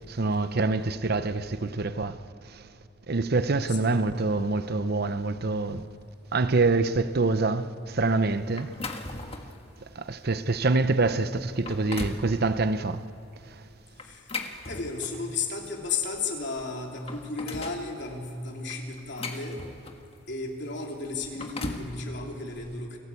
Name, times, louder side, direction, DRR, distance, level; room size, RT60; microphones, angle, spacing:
voice 1, 0.1-2.2 2.5-2.6 3.1-5.8 6.3-8.7 10.0-13.0, right 3 dB, 55° right, 0.8 m, -26 dB
voice 2, 3.7-4.0 14.0-14.3 14.6-19.6 20.3-23.0, left 4 dB, 65° left, 3.2 m, -34 dB
sound 1, 8.6-9.6 10.2-10.4 11.0-11.1 11.5-12.3 14.0-15.3 16.4-16.5 16.8-17.9 18.7-20.1 21.1-21.9, left 3 dB, 30° left, 1.5 m, -37 dB
29.0 x 17.0 x 8.4 m
head